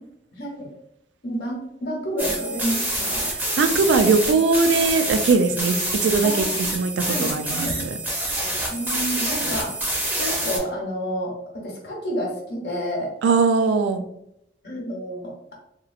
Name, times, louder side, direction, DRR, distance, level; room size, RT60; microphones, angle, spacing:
voice 1, 0.3-0.7 1.2-3.3 6.2-6.7 7.0-7.8 8.7-13.1 14.6-15.3, equal, 65° left, -2 dB, 0.8 m, -30 dB
sound 1, 2.2-10.6, right 1 dB, 10° right, 0.4 m, -26 dB
voice 2, 3.6-7.9 13.2-14.0, right 4 dB, 90° right, 8 dB, 0.3 m, -20 dB
2.9 x 2.4 x 2.4 m, 0.78 s
head